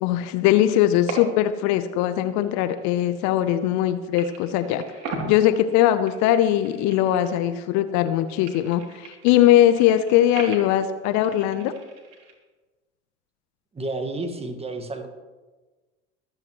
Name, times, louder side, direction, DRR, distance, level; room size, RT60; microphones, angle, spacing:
voice 1, 0.0-4.8 5.2-11.7, left 12 dB, 55° left, 11 dB, 0.8 m, -20 dB
sound 1, 0.8-1.6 1.9-3.9 4.2-7.7 8.0-12.3, right 3 dB, 55° right, 3.1 m, -39 dB
voice 2, 13.7-15.1, right 2 dB, 15° right, 6 dB, 1.7 m, -31 dB
24.0 x 8.8 x 3.1 m, 1.3 s
hypercardioid pair, 75°, 35 cm